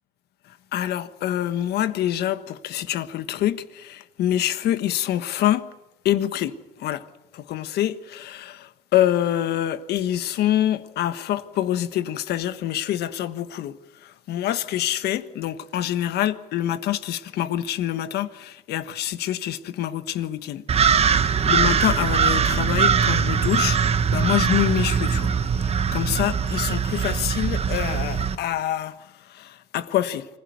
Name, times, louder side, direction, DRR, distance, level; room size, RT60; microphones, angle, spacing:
voice 1, 0.7-5.7 6.0-6.5 6.8-7.0 7.3-13.8 14.0-23.8 24.1-25.3 25.6-29.0 29.3-30.3, left 12 dB, 75° left, 1.4 m, -26 dB
sound 1, 20.7-28.4, right 6 dB, 35° right, 1.3 m, -21 dB
25.0 x 16.0 x 9.5 m
cardioid pair, 110°, 17 cm